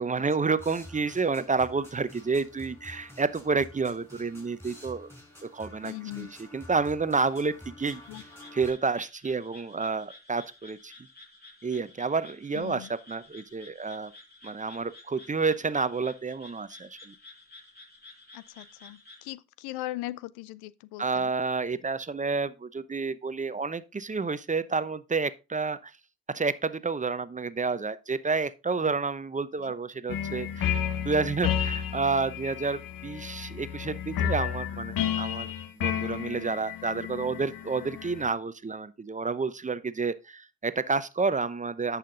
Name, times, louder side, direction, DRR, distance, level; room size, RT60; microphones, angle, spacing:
voice 1, 0.0-5.1 5.5-8.0 8.5-10.9 11.6-14.1 14.4-17.1 21.0-25.9 26.3-30.8 31.0-35.5 35.8-42.0, right 4 dB, 20° right, 0.7 m, -30 dB
sound 1, 0.6-8.7, left 1 dB, 5° left, 5.4 m, -49 dB
voice 2, 5.8-6.4 8.1-8.2 12.5-12.9 18.3-21.3 29.6-29.7, left 16 dB, 75° left, 0.6 m, -39 dB
sound 2, 7.8-19.3, left 2 dB, 25° left, 5.8 m, -52 dB
sound 3, 30.1-38.3, left 9 dB, 60° left, 1.1 m, -32 dB
10.0 x 5.9 x 3.8 m
hypercardioid pair, 55°, 40 cm